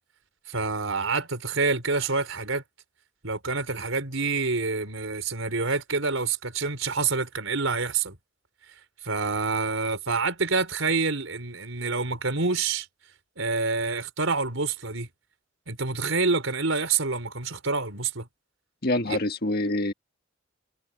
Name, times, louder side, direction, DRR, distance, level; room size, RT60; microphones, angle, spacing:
voice 1, 0.5-2.6 3.2-8.2 9.0-12.9 13.4-15.1 15.7-18.3 19.1-19.2, right 4 dB, 80° right, 4.3 m, -27 dB
voice 2, 18.8-19.9, left 1 dB, 50° left, 1.6 m, -26 dB
head